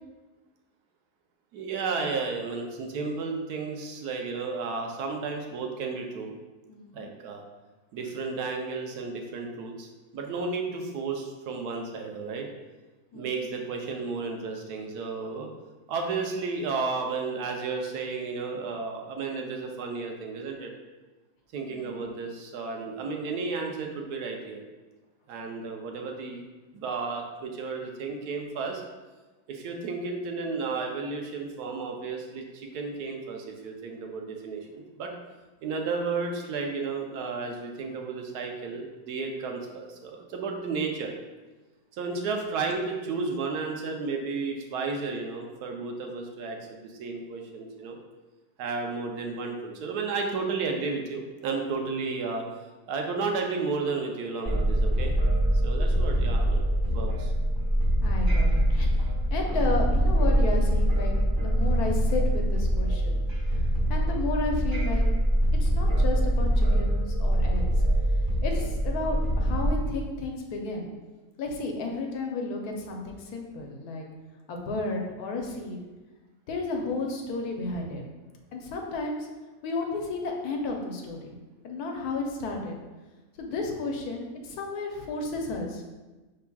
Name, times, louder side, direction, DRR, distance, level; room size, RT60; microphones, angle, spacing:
voice 1, 1.5-6.3 6.9-7.4 7.9-12.5 13.1-15.5 15.9-20.7 21.5-24.6 25.3-26.4 26.7-28.8 29.5-35.1 35.6-41.1 41.9-48.0 48.6-52.4 52.9-55.2 55.6-57.3, right 4 dB, 85° right, 2 dB, 1.2 m, -33 dB
voice 2, 6.7-7.1 13.1-13.5 21.7-22.1 58.0-63.3 63.9-65.1 65.6-67.7 68.4-70.9 71.4-74.0 74.5-75.8 76.5-78.0 78.5-79.3 79.6-81.3 81.6-82.8 83.3-85.9, left 3 dB, 80° left, 1 dB, 1.2 m, -33 dB
sound 1, 54.5-69.7, right 1 dB, 20° right, 0.9 m, -24 dB
5.6 x 3.5 x 2.3 m, 1.2 s
omnidirectional pair, 1.6 m